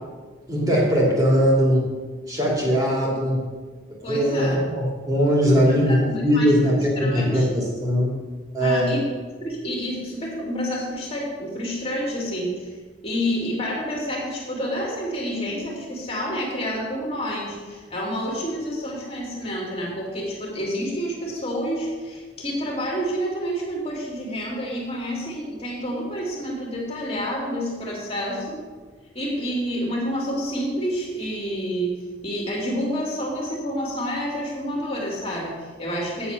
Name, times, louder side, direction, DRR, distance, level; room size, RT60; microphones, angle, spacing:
voice 1, 0.5-1.9 2.3-3.4 4.0-8.1 8.5-8.9, equal, 20° right, -3 dB, 2.8 m, -20 dB
voice 2, 4.0-4.7 5.4-6.5 7.0-7.6 8.6-9.0 9.4-12.7 13.0-28.6 29.1-31.9 32.2-36.3, equal, 30° left, -3 dB, 2.5 m, -29 dB
8.7 x 7.0 x 6.8 m, 1.4 s
head